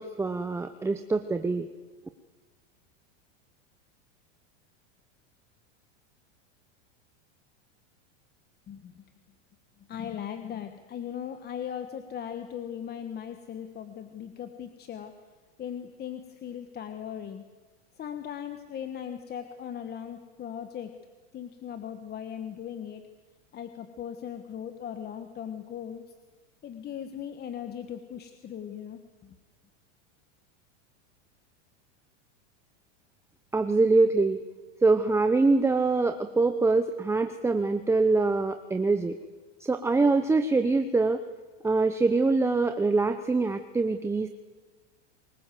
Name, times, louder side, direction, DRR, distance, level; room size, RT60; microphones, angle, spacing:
voice 1, 0.0-1.7 33.5-34.4 34.8-39.2 39.6-41.2 41.6-44.3, right 3 dB, 5° right, 7 dB, 0.7 m, -24 dB
voice 2, 8.7-9.0 9.9-15.1 15.6-17.4 18.0-21.0 21.3-23.0 23.5-26.0 26.6-29.3, left 9 dB, 25° left, 7 dB, 1.4 m, -38 dB
24.0 x 21.0 x 7.7 m, 1.3 s
supercardioid pair, 135°, 37 cm